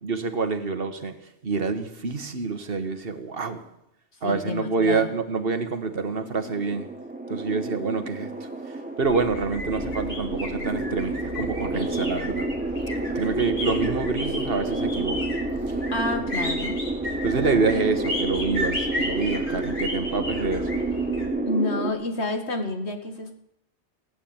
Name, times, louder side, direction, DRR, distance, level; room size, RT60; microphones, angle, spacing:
voice 1, 0.0-3.7 4.2-6.9 7.3-8.4 9.0-12.5 13.2-15.4 15.7-15.8 17.2-20.8, right 4 dB, 55° right, 1.6 m, -27 dB
voice 2, 4.2-5.1 15.9-16.8 17.8-17.9 21.5-23.4, left 2 dB, 70° left, 2.4 m, -29 dB
sound 1, 6.0-21.9, right 2 dB, 5° right, 1.7 m, -30 dB
sound 2, 9.0-21.3, left 1 dB, 50° left, 5.3 m, -34 dB
18.0 x 9.1 x 8.9 m
omnidirectional pair, 1.1 m